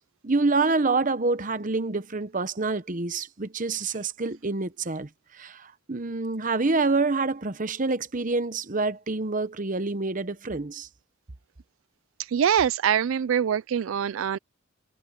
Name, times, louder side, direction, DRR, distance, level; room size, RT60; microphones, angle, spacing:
voice 1, 0.2-5.1 5.4-10.9, right 3 dB, 40° right, 0.9 m, -27 dB
voice 2, 12.2-14.4, right 8 dB, 70° right, 0.4 m, -24 dB
head